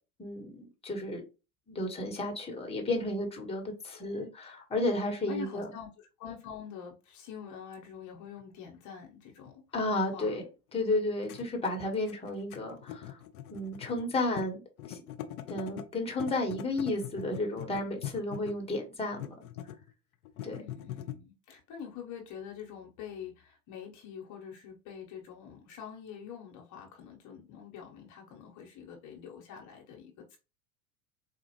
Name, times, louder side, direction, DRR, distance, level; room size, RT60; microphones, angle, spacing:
voice 1, 0.2-1.2 1.7-5.7 9.7-10.4 10.7-13.1 13.5-15.0 15.5-19.3 20.4-20.6, left 2 dB, 15° left, 1.2 m, -32 dB
voice 2, 5.3-9.6 10.1-10.4 20.6-30.4, left 7 dB, 45° left, 1.1 m, -45 dB
sound 1, 8.4-8.5 9.5-9.6 10.9-11.0 11.2-14.0 14.3-14.5 14.8-15.9 16.2-18.7 19.1-19.9 20.2-21.1, left 11 dB, 75° left, 0.6 m, -42 dB
4.1 x 2.4 x 3.0 m
hypercardioid pair, 80°, 44 cm